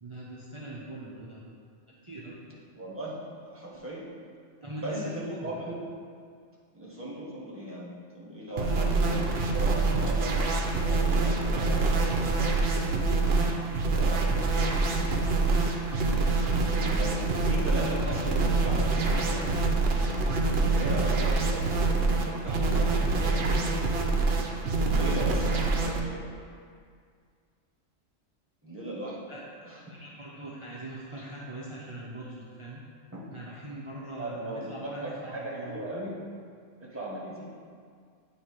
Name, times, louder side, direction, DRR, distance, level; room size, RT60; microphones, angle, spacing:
voice 1, 0.0-1.4 2.0-2.4 4.6-5.6 8.6-8.9 29.3-29.4 29.9-32.8 33.3-35.8, right 1 dB, 30° right, -6 dB, 0.7 m, -41 dB
voice 2, 2.7-4.1 4.8-5.8 6.7-9.2 9.5-10.5 10.8-12.9 13.8-14.4 16.7-19.9 20.5-23.8 24.8-26.2 28.6-29.2 29.6-29.9 31.2-31.3 34.2-36.2 36.8-37.5, right 1 dB, 10° right, -5 dB, 1.3 m, -38 dB
sound 1, 8.6-26.0, right 3 dB, 60° right, 0.8 m, -26 dB
9.0 x 3.3 x 4.7 m, 2.1 s
omnidirectional pair, 1.3 m